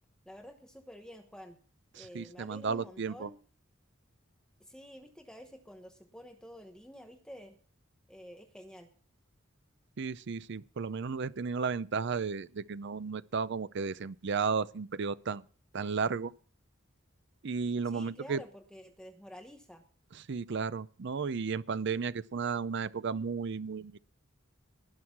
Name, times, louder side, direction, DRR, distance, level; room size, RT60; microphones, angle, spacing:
voice 1, 0.3-1.6 1.9-3.4 4.6-7.6 8.1-8.9 17.8-19.8, equal, 5° left, 1.0 m, -50 dB
voice 2, 1.9-3.3 10.0-15.4 15.7-16.3 17.4-18.4 20.1-24.0, right 5 dB, 60° right, 0.5 m, -34 dB
18.5 x 6.3 x 6.0 m
head